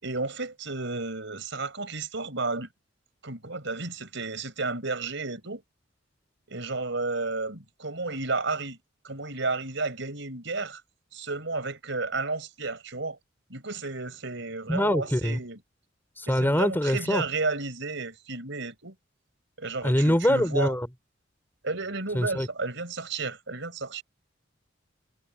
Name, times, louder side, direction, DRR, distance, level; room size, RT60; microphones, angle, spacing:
voice 1, 0.0-2.7 3.2-5.6 6.5-8.8 9.0-10.8 11.1-13.2 13.5-15.6 16.3-18.9 19.6-20.7 21.6-24.0, right 3 dB, 70° right, 6.1 m, -32 dB
voice 2, 14.7-15.4 16.2-17.2 19.8-20.9 22.1-22.5, equal, 10° left, 3.4 m, -24 dB
head